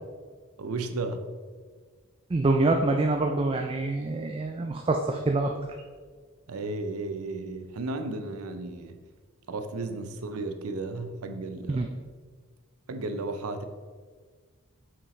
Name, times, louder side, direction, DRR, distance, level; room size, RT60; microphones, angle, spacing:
voice 1, 0.6-1.2 6.5-9.0 9.5-11.9 12.9-13.6, right 3 dB, 90° right, 8 dB, 0.6 m, -34 dB
voice 2, 2.3-5.5 11.7-11.9, right 2 dB, 25° right, 3 dB, 0.3 m, -25 dB
7.2 x 5.7 x 3.2 m, 1.5 s
head